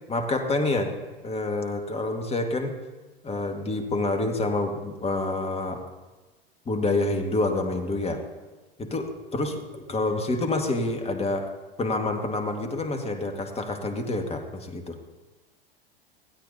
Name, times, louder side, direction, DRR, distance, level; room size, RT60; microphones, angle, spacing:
voice 1, 0.1-0.9 1.2-2.8 3.2-5.8 6.7-8.2 8.8-11.5 11.8-15.0, left 2 dB, 20° left, 4 dB, 1.9 m, -27 dB
23.5 x 16.0 x 2.9 m, 1.2 s
figure-of-eight pair, 85°, 30 cm